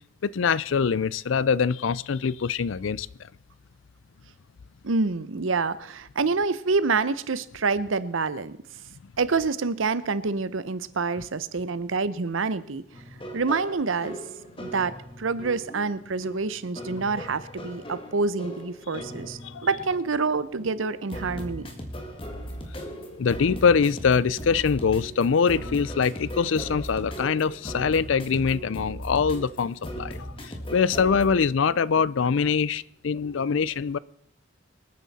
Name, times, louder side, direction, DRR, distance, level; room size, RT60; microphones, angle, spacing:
voice 1, 0.2-3.1 19.4-19.7 22.3-22.4 23.0-34.0, left 6 dB, 75° left, 0.4 m, -24 dB
voice 2, 4.8-8.6 9.2-12.9 13.3-14.2 14.6-21.7, right 4 dB, 85° right, 0.8 m, -27 dB
sound 1, 12.9-31.3, equal, 25° left, 1.9 m, -38 dB
26.0 x 9.4 x 4.2 m
head